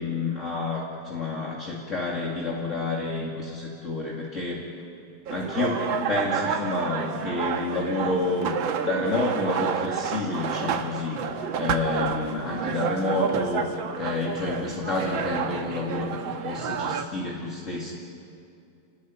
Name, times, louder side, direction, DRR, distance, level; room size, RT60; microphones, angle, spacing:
voice 1, 0.0-4.6 5.3-11.2 11.6-17.9, left 3 dB, 40° left, -3 dB, 2.7 m, -29 dB
sound 1, 5.3-17.1, right 7 dB, 75° right, 1.9 m, -30 dB
28.5 x 19.5 x 9.6 m, 2.5 s
omnidirectional pair, 2.2 m